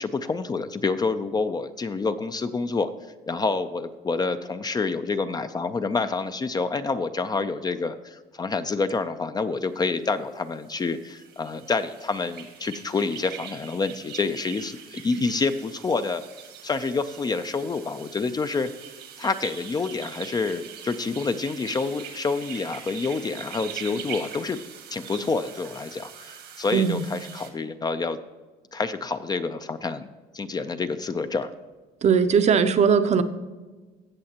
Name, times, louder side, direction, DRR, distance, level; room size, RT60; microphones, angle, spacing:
voice 1, 0.0-2.9 3.3-16.2 16.6-18.7 19.2-24.6 24.9-28.2 28.7-30.1 30.3-31.5, left 4 dB, 25° left, 10 dB, 0.4 m, -28 dB
sound 1, 10.7-27.5, right 8 dB, 80° right, 1.6 m, -42 dB
voice 2, 26.7-27.0 32.0-33.2, right 6 dB, 40° right, 10 dB, 0.7 m, -19 dB
16.5 x 6.4 x 2.9 m, 1.3 s
cardioid pair, 110°, 17 cm